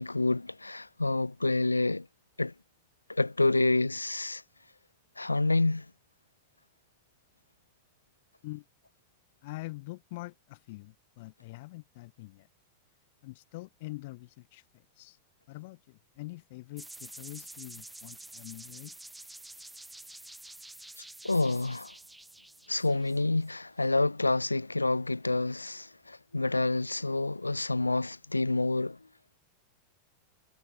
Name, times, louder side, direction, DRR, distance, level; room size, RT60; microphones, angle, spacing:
voice 1, 0.0-2.1 2.4-2.5 3.1-4.4 5.2-5.9 21.2-21.9 22.7-29.0, left 2 dB, 85° left, 0.5 m, -28 dB
voice 2, 9.4-12.5 13.2-15.2 15.5-18.9, left 21 dB, 50° left, 1.2 m, -44 dB
sound 1, 16.8-23.5, right 1 dB, 5° right, 4.7 m, -48 dB
figure-of-eight pair, 90°, 0 cm